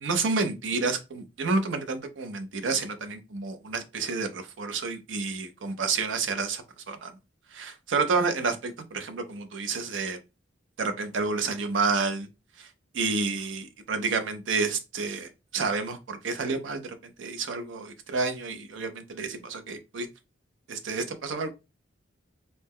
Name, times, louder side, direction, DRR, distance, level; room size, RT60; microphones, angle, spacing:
voice 1, 0.0-7.1 7.5-10.2 10.8-12.3 12.6-12.7 12.9-20.1 20.7-21.5, right 4 dB, 90° right, 0.5 m, -30 dB
2.7 x 2.1 x 3.4 m
head